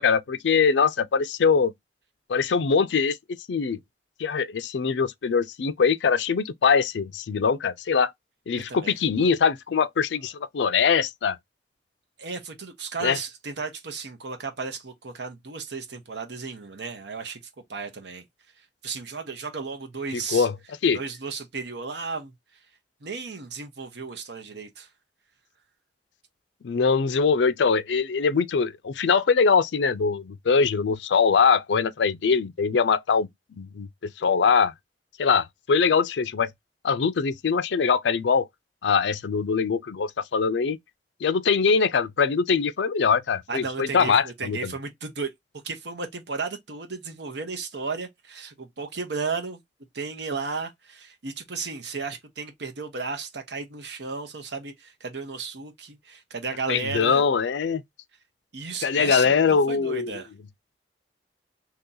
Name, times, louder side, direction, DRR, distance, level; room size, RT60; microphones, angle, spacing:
voice 1, 0.0-1.7 2.3-3.2 3.5-3.8 4.2-8.1 8.5-11.4 13.0-13.2 20.1-20.5 20.8-21.0 26.6-34.7 35.2-36.5 36.8-38.5 38.8-40.8 41.2-44.7 56.7-57.8 58.8-60.1, left 5 dB, 90° left, 0.4 m, -22 dB
voice 2, 12.2-17.4 17.7-18.2 18.6-20.5 20.9-22.3 23.0-24.9 43.5-45.3 45.6-49.6 49.9-57.2 58.5-60.3, right 4 dB, 75° right, 0.9 m, -34 dB
2.9 x 2.7 x 3.8 m
head